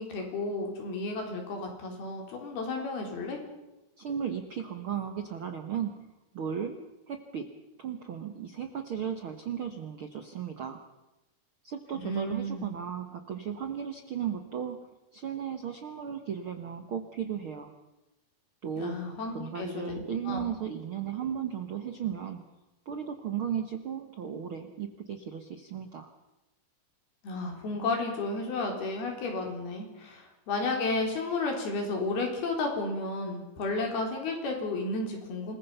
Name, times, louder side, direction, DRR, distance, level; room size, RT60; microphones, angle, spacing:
voice 1, 0.0-3.4 11.9-12.7 18.8-20.5 27.2-35.6, left 2 dB, 85° left, 2 dB, 5.9 m, -32 dB
voice 2, 4.0-10.8 11.6-17.7 18.6-19.0 19.3-22.5 22.8-26.1, right 8 dB, 70° right, 7 dB, 1.2 m, -35 dB
27.0 x 21.0 x 5.6 m, 1.0 s
omnidirectional pair, 4.3 m